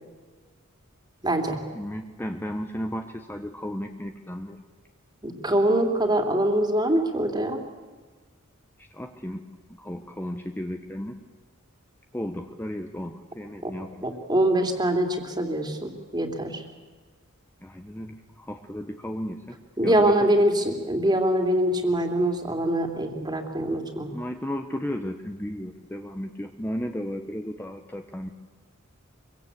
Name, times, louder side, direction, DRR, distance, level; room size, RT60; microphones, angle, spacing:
voice 1, 1.2-1.6 5.2-7.6 13.6-13.7 14.0-16.6 19.8-24.1, right 1 dB, 20° right, 4 dB, 2.9 m, -24 dB
voice 2, 1.7-4.6 8.9-9.4 9.8-11.2 12.1-14.0 17.6-19.6 19.8-20.1 24.1-28.3, equal, 10° left, 5 dB, 1.0 m, -34 dB
24.5 x 23.5 x 8.5 m, 1.3 s
head